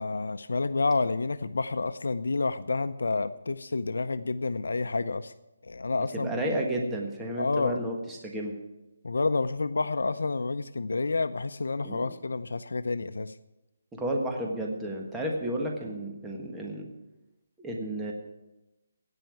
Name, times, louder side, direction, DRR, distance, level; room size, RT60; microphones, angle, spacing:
voice 1, 0.0-5.3 5.6-6.3 7.4-7.8 9.0-13.4, left 3 dB, 85° left, 12 dB, 0.6 m, -29 dB
voice 2, 6.1-8.5 11.8-12.1 13.9-16.9 17.6-18.1, right 1 dB, 5° right, -1 dB, 1.5 m, -32 dB
17.0 x 5.7 x 9.2 m, 0.97 s
hypercardioid pair, 165°, 0 cm